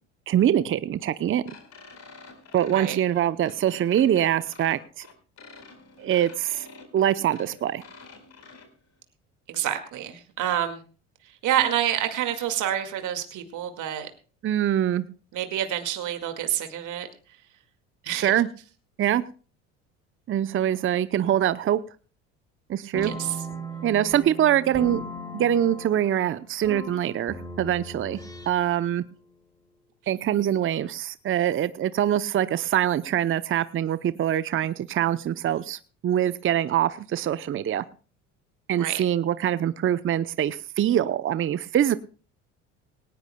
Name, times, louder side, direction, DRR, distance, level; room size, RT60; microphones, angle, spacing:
voice 1, 0.3-1.4 2.5-5.1 6.0-6.7 6.9-7.8 14.4-15.0 18.1-18.5 19.0-19.2 20.3-21.8 22.7-23.1 23.8-25.0 25.3-28.2 28.5-29.0 30.1-37.8 38.7-42.0, right 11 dB, 35° right, 14 dB, 0.7 m, -24 dB
sound 1, 1.5-8.7, left 4 dB, 45° left, 4.5 m, -48 dB
voice 2, 9.5-10.8 11.4-14.1 15.3-17.1 18.0-18.4 23.0-23.4 38.8-39.0, right 11 dB, 55° right, 6 dB, 2.1 m, -28 dB
sound 2, 22.9-28.9, right 1 dB, 10° left, 2.1 m, -38 dB
18.5 x 18.5 x 2.2 m, 0.37 s
hypercardioid pair, 70°, 37 cm